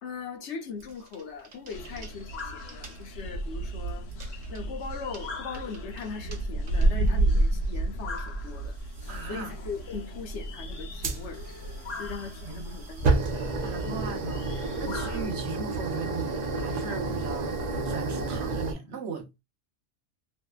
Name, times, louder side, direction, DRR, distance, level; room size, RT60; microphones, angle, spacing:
voice 1, 0.0-4.1 4.5-8.8 9.2-11.4 12.0-13.2 13.9-14.0 14.9-15.0, left 5 dB, 70° left, 1.0 m, -39 dB
sound 1, 0.8-2.4 2.7-2.9 4.1-4.6 5.1-5.3 5.5-6.0 6.3-6.4 6.7-7.1 8.2-8.3 9.0-9.2 11.0-18.7, right 3 dB, 50° right, 0.5 m, -31 dB
sound 2, 1.7-15.3, right 1 dB, 90° left, 1.2 m, -31 dB
voice 2, 9.1-9.5 12.4-17.5 17.8-19.3, right 4 dB, 65° right, 1.0 m, -38 dB
2.7 x 2.5 x 2.3 m
omnidirectional pair, 1.3 m